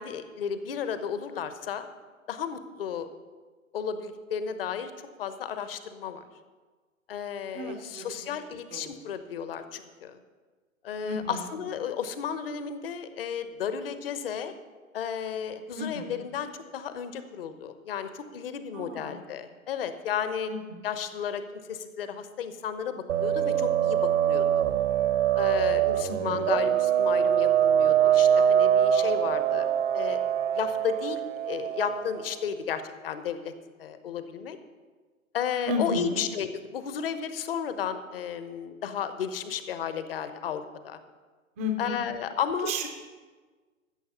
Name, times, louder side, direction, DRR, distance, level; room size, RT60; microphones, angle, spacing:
voice 1, 0.0-1.9 2.3-3.1 3.7-4.9 5.2-6.2 7.1-10.2 10.8-14.5 14.9-20.5 20.8-24.6 25.3-29.7 29.9-30.2 30.5-33.5 33.8-34.6 35.3-41.0 41.8-42.9, left 8 dB, 45° left, 11 dB, 1.0 m, -33 dB
voice 2, 7.5-8.2 8.7-8.9 11.0-11.4 15.7-16.3 18.7-19.2 20.5-20.9 26.1-26.5 35.7-36.2 41.6-42.0 42.6-42.9, left 1 dB, 10° right, 4 dB, 0.4 m, -33 dB
sound 1, 23.1-32.3, right 9 dB, 60° right, 0.7 m, -24 dB
14.0 x 7.0 x 5.7 m, 1.4 s
figure-of-eight pair, 115°, 41 cm